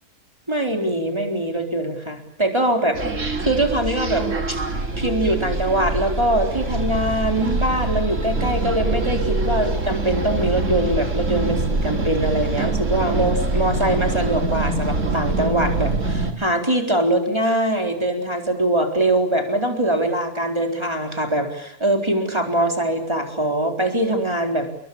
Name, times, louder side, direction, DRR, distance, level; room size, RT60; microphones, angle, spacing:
voice 1, 0.5-4.6 5.0-24.7, right 1 dB, 15° right, 4 dB, 4.2 m, -22 dB
sound 1, 2.9-16.3, right 2 dB, 55° right, 3.2 m, -24 dB
29.5 x 22.5 x 8.8 m, 0.68 s
omnidirectional pair, 1.6 m